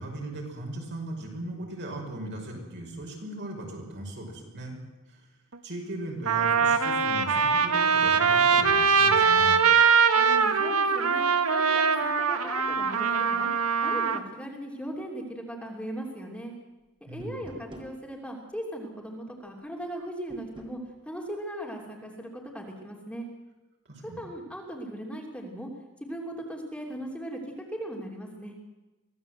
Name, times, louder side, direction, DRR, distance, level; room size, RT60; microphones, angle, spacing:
voice 1, 0.0-4.8 5.1-5.3 5.6-9.6 17.1-17.6 23.9-24.2, right 1 dB, 55° right, 0 dB, 5.8 m, -38 dB
Trumpet, 5.5-5.6 6.3-14.2, right 5 dB, 80° right, 1.5 m, -22 dB
voice 2, 10.1-13.5 13.8-16.5 17.1-23.3 24.0-25.7 26.0-28.5, right 1 dB, 5° left, 0 dB, 3.1 m, -38 dB
sound 1, 17.2-17.9 20.3-20.8, right 1 dB, 25° right, 3.2 m, -45 dB
24.0 x 16.5 x 8.0 m, 1.1 s
head